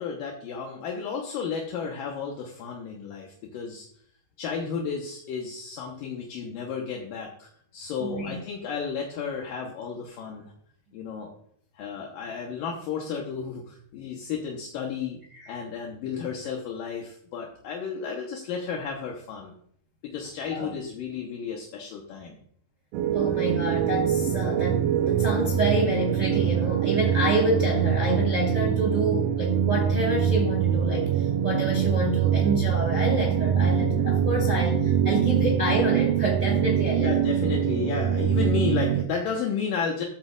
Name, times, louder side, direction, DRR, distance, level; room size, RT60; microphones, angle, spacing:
voice 1, 0.0-3.9 4.4-10.4 10.9-11.3 11.8-15.2 15.5-19.5 20.0-22.4 36.9-40.0, left 6 dB, 70° left, 0 dB, 2.4 m, -33 dB
voice 2, 8.0-8.4 15.3-15.6 20.5-20.7 23.1-37.1, right 1 dB, 30° right, -2 dB, 1.5 m, -28 dB
sound 1, 22.9-39.0, right 8 dB, 90° right, 2.0 m, -24 dB
14.0 x 8.8 x 2.5 m, 0.63 s
omnidirectional pair, 5.0 m